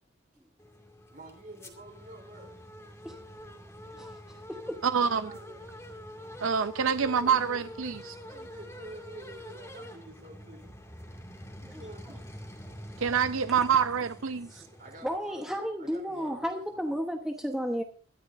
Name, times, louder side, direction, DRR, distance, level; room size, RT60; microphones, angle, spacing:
sound 1, 0.6-15.2, equal, 15° left, 2.3 m, -46 dB
voice 1, 1.1-2.6 4.9-5.8 6.9-7.7 8.2-10.7 11.6-12.5 14.8-17.0, right 1 dB, 40° right, 3.6 m, -49 dB
voice 2, 3.9-4.8 6.2-6.4 11.7-11.8 14.5-14.6 15.0-17.8, equal, 5° right, 1.1 m, -33 dB
voice 3, 4.8-5.3 6.4-8.1 13.0-14.5, right 6 dB, 85° right, 0.6 m, -26 dB
23.0 x 13.5 x 2.7 m
head